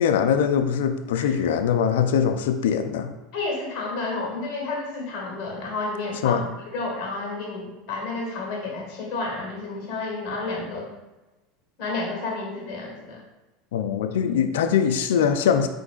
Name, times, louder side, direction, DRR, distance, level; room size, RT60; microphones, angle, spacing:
voice 1, 0.0-3.1 6.2-6.4 13.7-15.7, left 7 dB, 80° left, 8 dB, 0.4 m, -22 dB
voice 2, 3.3-6.5 6.7-10.9 11.8-13.2, left 3 dB, 60° left, -1 dB, 1.4 m, -31 dB
4.4 x 3.8 x 2.4 m, 1.1 s
hypercardioid pair, 95°, 0 cm